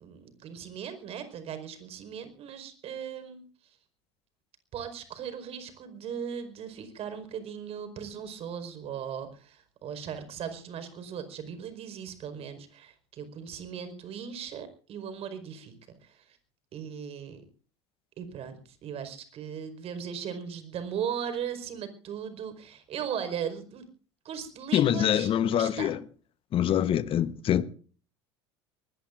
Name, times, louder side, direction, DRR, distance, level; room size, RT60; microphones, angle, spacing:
voice 1, 0.0-3.8 4.7-15.7 16.0-16.4 16.7-17.4 18.2-23.9 24.2-25.9, right 8 dB, 45° right, 4.9 m, -38 dB
voice 2, 24.7-26.0 26.5-27.7, left 10 dB, 40° left, 1.1 m, -25 dB
24.0 x 20.5 x 2.6 m
figure-of-eight pair, 75°, 14 cm